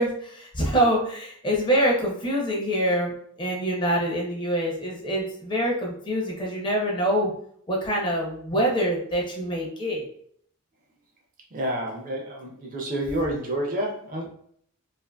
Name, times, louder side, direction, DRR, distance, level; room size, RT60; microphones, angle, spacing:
voice 1, 0.0-3.1 3.4-7.3 7.7-10.1, right 1 dB, 20° left, -1 dB, 0.5 m, -25 dB
voice 2, 11.5-14.3, right 1 dB, 40° right, 1 dB, 0.4 m, -29 dB
2.5 x 2.5 x 2.2 m, 0.64 s
head